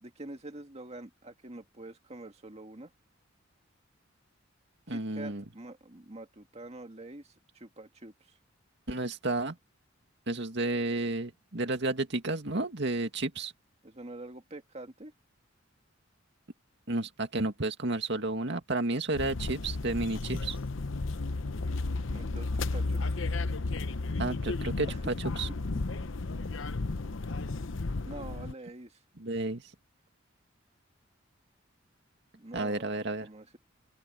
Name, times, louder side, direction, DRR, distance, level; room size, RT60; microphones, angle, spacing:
voice 1, 0.0-2.9 4.9-8.4 13.8-15.1 22.1-23.2 24.9-25.0 28.1-29.0 32.3-33.6, right 2 dB, 35° right, 2.0 m, -46 dB
voice 2, 4.9-5.4 8.9-9.6 10.3-13.5 16.9-20.6 24.2-25.5 29.2-29.6 32.5-33.3, right 2 dB, 60° right, 2.2 m, -31 dB
sound 1, 19.1-28.5, left 3 dB, 75° left, 0.9 m, -33 dB
open air
head